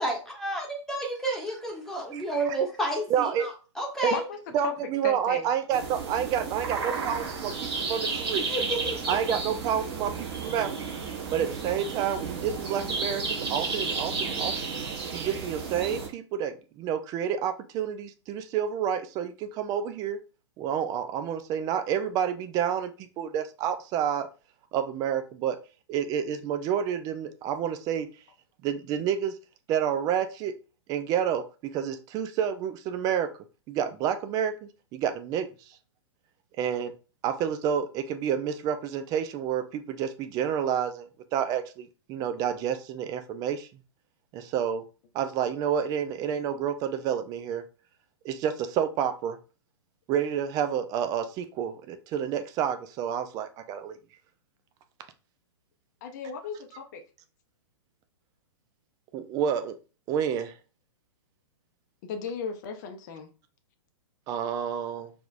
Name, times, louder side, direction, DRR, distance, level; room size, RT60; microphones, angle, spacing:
voice 1, 0.0-3.5 3.8-4.3 8.5-9.3, right 2 dB, 5° left, 1.4 m, -31 dB
voice 2, 3.1-3.5 4.0-4.1 4.5-7.5 7.9-8.4 9.1-10.7 11.3-14.8 15.1-20.2 20.6-24.3 24.7-25.6 25.9-28.1 28.6-29.3 29.7-30.5 30.9-31.4 31.7-33.3 33.7-35.5 36.6-36.9 37.2-43.7 44.3-44.8 45.1-47.6 48.2-49.4 50.1-54.0 59.1-59.7 60.1-60.5 64.3-65.1, right 8 dB, 25° right, 0.5 m, -29 dB
voice 3, 5.0-5.4 56.0-57.0 62.1-63.3, left 6 dB, 40° left, 0.7 m, -35 dB
sound 1, 5.7-16.1, right 4 dB, 55° right, 1.7 m, -32 dB
4.9 x 3.5 x 2.5 m
figure-of-eight pair, 110°, 16 cm